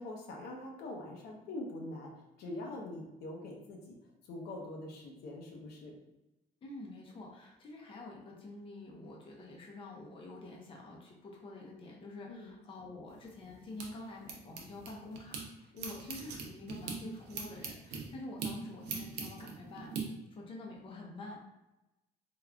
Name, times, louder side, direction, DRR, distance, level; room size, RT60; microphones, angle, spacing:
voice 1, 0.0-3.9 4.2-6.0 12.3-12.5 15.7-15.9, left 1 dB, 70° left, 0 dB, 0.7 m, -44 dB
voice 2, 6.6-19.9 20.3-21.5, left 2 dB, 30° left, -1 dB, 0.5 m, -48 dB
sound 1, 13.1-15.4 15.8-20.0, right 5 dB, 80° right, 0.6 m, -42 dB
3.5 x 2.3 x 2.2 m, 0.96 s
cardioid pair, 110°, 17 cm